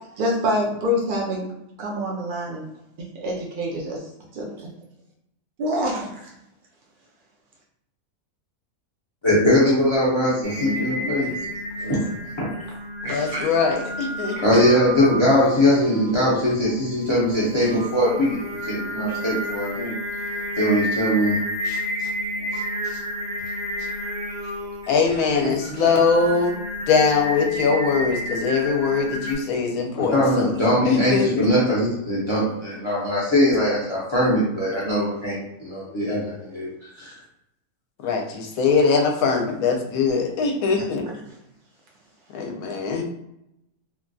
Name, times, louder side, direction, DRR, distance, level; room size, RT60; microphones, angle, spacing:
voice 1, 0.2-1.5 1.8-2.7 3.0-4.0 4.3-4.7 5.6-6.3 10.6-11.2 13.0-13.5 25.4-26.0, equal, 90° right, -3 dB, 0.4 m, -27 dB
voice 2, 9.2-11.3 11.8-12.0 12.4-12.5 14.4-19.9 20.6-21.4 21.6-22.1 22.8-23.0 25.1-25.2 29.9-36.7 37.0-37.1, left 1 dB, 35° left, -8 dB, 0.4 m, -21 dB
Singing, 10.4-29.3, equal, 60° right, 1.2 m, -31 dB
voice 3, 13.0-14.4 22.5-22.6 24.9-26.5 26.9-30.5 30.8-31.5 38.0-41.1 42.3-43.0, left 5 dB, 75° left, 2 dB, 1.1 m, -22 dB
3.1 x 2.5 x 2.3 m, 0.83 s
omnidirectional pair, 1.6 m